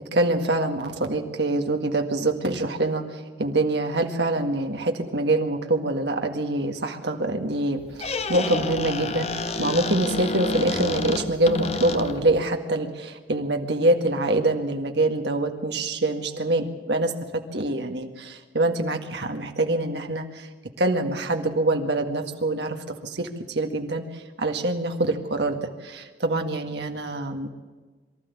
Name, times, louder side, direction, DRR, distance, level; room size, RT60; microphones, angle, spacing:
voice 1, 0.1-17.1 17.5-20.5 20.8-22.8 23.0-27.5, right 2 dB, 70° right, 4 dB, 1.9 m, -25 dB
Squeak, 7.8-12.4, left 3 dB, 35° left, 1.0 m, -29 dB
23.5 x 13.0 x 8.4 m, 1.3 s
head